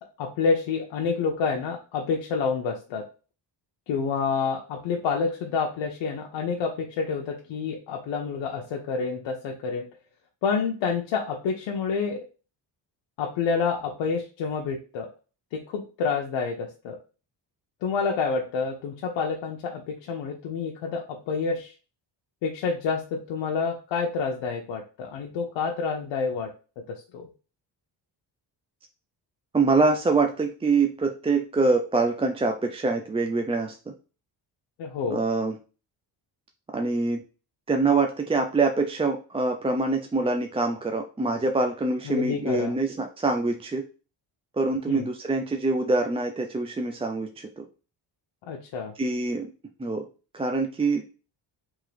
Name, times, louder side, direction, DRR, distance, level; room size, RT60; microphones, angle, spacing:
voice 1, 0.2-3.0 3.9-9.8 10.4-12.2 13.2-15.1 15.5-17.0 17.8-21.7 22.4-26.5 27.1-27.3 34.8-35.2 42.1-42.8 44.9-45.1 48.5-48.9, left 5 dB, 85° left, 1 dB, 0.7 m, -28 dB
voice 2, 29.5-33.8 35.1-35.6 36.7-37.2 37.7-43.8 44.5-47.6 49.0-49.5 49.8-50.1 50.3-51.0, right 3 dB, 15° right, 3 dB, 0.3 m, -25 dB
3.7 x 3.0 x 3.2 m, 0.34 s
cardioid pair, 95°, 45 cm